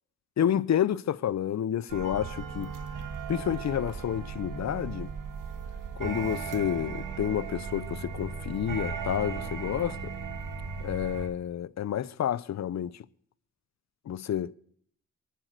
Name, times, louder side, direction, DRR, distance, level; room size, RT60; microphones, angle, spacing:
voice 1, 0.4-2.7 3.3-5.1 6.0-10.0 10.8-13.0 14.1-14.5, left 10 dB, 60° left, 0.6 m, -29 dB
sound 1, 1.9-11.3, right 5 dB, 75° right, 1.7 m, -37 dB
22.5 x 7.7 x 6.5 m
cardioid pair, 60°, 32 cm